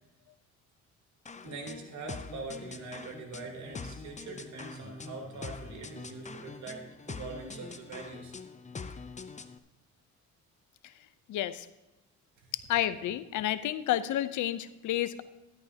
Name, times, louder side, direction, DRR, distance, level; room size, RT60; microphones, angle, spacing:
sound 1, 1.3-9.6, left 4 dB, 25° left, 0.8 m, -44 dB
voice 1, 1.4-8.3 12.4-12.5, right 3 dB, 70° right, 1 dB, 3.4 m, -43 dB
voice 2, 11.3-11.7 12.5-15.2, left 12 dB, 75° left, 14 dB, 0.7 m, -30 dB
13.5 x 11.5 x 2.9 m, 1.0 s
cardioid pair, 90°, 30 cm